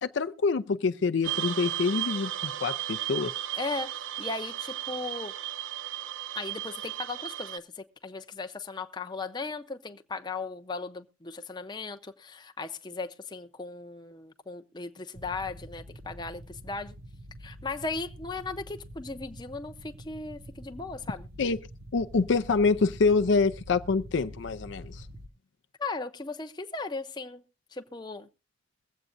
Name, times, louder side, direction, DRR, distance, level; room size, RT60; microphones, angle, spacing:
voice 1, 0.0-3.3 21.4-21.6 21.9-25.0, left 4 dB, 60° left, 0.5 m, -26 dB
sound 1, 1.2-7.6, right 13 dB, 65° right, 0.5 m, -35 dB
voice 2, 3.5-5.3 6.3-16.9 17.4-21.3 25.8-27.4 27.7-28.3, left 3 dB, 20° left, 0.6 m, -37 dB
sound 2, 15.1-25.3, equal, 50° right, 0.9 m, -46 dB
22.0 x 8.1 x 2.5 m
head